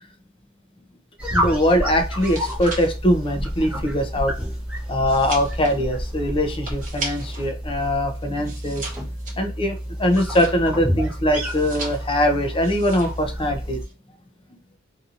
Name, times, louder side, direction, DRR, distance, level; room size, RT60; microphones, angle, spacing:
sound 1, 1.2-13.8, equal, 5° right, 0.8 m, -29 dB
voice 1, 1.3-4.3 4.9-8.9 9.4-13.8, equal, 25° left, 6 dB, 0.6 m, -22 dB
sound 2, 2.0-7.5 7.8-10.9 11.3-12.2 12.6-13.3 13.5-13.9, right 3 dB, 40° right, 1.0 m, -38 dB
2.7 x 2.7 x 2.5 m, 0.34 s
head